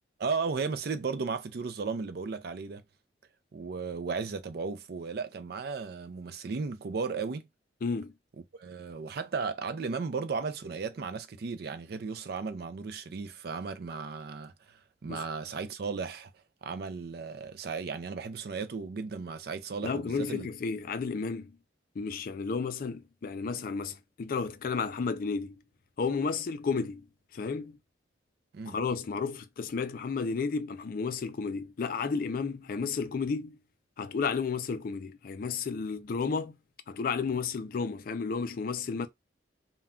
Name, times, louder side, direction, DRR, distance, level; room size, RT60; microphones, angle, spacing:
voice 1, 0.2-2.8 3.5-7.5 8.4-16.3 16.6-20.5 28.5-28.7, right 4 dB, 55° right, 0.4 m, -35 dB
voice 2, 7.8-8.1 15.1-15.2 19.8-21.5 22.0-25.6 26.0-27.1 27.3-27.8 28.7-33.6 34.0-36.5 36.9-39.1, left 5 dB, 50° left, 0.3 m, -32 dB
2.2 x 2.2 x 3.5 m
head